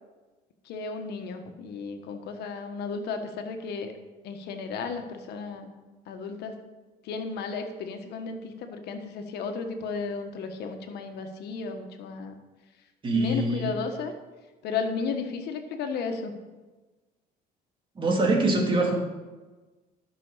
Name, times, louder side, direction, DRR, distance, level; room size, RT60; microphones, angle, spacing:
voice 1, 0.6-3.9 4.2-5.7 6.1-6.6 7.0-12.4 13.1-14.1 14.6-16.3, left 5 dB, 75° left, 5 dB, 1.5 m, -34 dB
voice 2, 13.0-13.7 18.0-19.0, right 2 dB, 30° right, -1 dB, 2.5 m, -24 dB
12.0 x 6.3 x 6.4 m, 1.2 s
cardioid pair, 110°, 17 cm